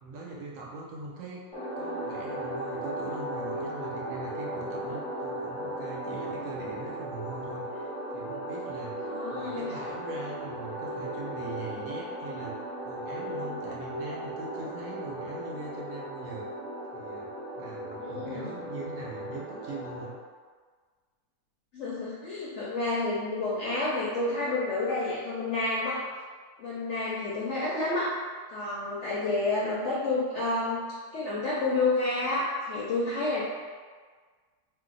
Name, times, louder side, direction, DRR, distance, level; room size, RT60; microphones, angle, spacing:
voice 1, 0.0-1.4 1.8-12.5 12.8-16.5 16.9-17.3 17.6-20.1 22.3-22.4, right 3 dB, 65° right, -3 dB, 0.9 m, -41 dB
sound 1, 1.5-20.1, right 1 dB, 10° left, 0.4 m, -36 dB
voice 2, 9.0-9.7 18.0-18.4 21.7-26.0 26.6-28.1 28.5-33.4, left 2 dB, 70° left, -7 dB, 0.7 m, -29 dB
2.7 x 2.0 x 3.8 m, 1.5 s
omnidirectional pair, 1.7 m